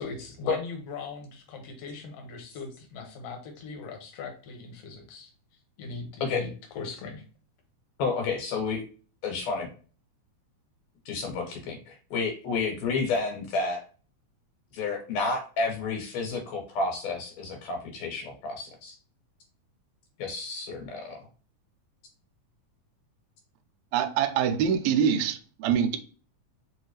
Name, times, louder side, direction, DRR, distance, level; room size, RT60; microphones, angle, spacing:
voice 1, 0.0-5.3 5.8-7.2, left 4 dB, 65° left, 1.7 m, -40 dB
voice 2, 8.0-8.8 9.2-9.7 11.1-13.9 14.7-19.0 20.2-21.3, left 4 dB, 90° left, 2.8 m, -30 dB
voice 3, 23.9-26.0, right 8 dB, 75° right, 1.7 m, -25 dB
5.2 x 2.6 x 3.1 m
omnidirectional pair, 3.6 m